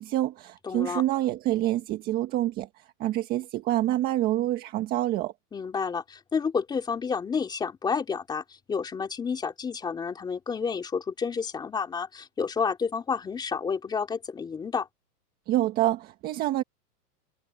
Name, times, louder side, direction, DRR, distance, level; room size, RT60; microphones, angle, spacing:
voice 1, 0.0-2.7 3.0-5.3 15.5-16.6, right 14 dB, 20° right, 1.6 m, -27 dB
voice 2, 0.6-1.0 5.5-14.9, left 5 dB, 10° left, 3.3 m, -30 dB
hypercardioid pair, 165°, 47 cm